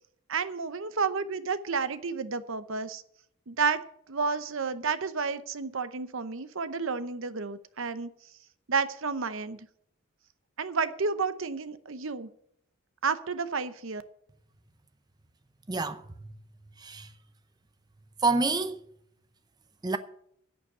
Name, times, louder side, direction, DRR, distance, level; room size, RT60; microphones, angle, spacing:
voice 1, 0.3-3.0 3.5-8.1 8.7-9.7 10.6-12.3 13.0-14.0, right 5 dB, 60° right, 0.8 m, -31 dB
voice 2, 15.7-16.3 16.8-17.1 18.2-18.8 19.8-20.0, right 3 dB, 20° right, 0.6 m, -28 dB
11.0 x 6.9 x 8.0 m
head